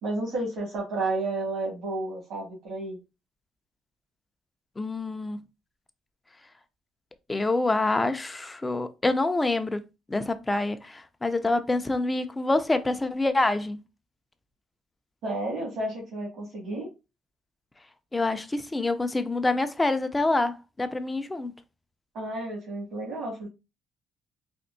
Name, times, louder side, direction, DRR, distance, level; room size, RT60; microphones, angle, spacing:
voice 1, 0.0-3.0 15.2-16.9 22.1-23.5, right 2 dB, 75° right, 2.0 m, -31 dB
voice 2, 4.8-5.4 7.3-9.8 10.1-13.8 18.1-21.5, left 2 dB, 15° left, 0.4 m, -26 dB
4.3 x 2.6 x 2.6 m
cardioid pair, 115°, 0 cm